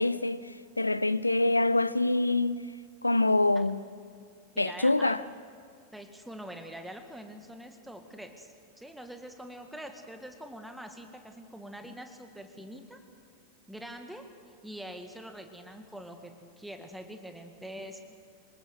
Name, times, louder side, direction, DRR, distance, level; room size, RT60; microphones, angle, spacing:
voice 1, 0.0-2.6 3.0-3.8 4.6-5.2, left 2 dB, 85° left, 0.5 m, -25 dB
voice 2, 4.5-5.2 5.9-13.0 13.7-14.3 14.6-18.0, equal, 5° right, 1.9 m, -44 dB
25.5 x 19.5 x 6.3 m
figure-of-eight pair, 90°, 0 cm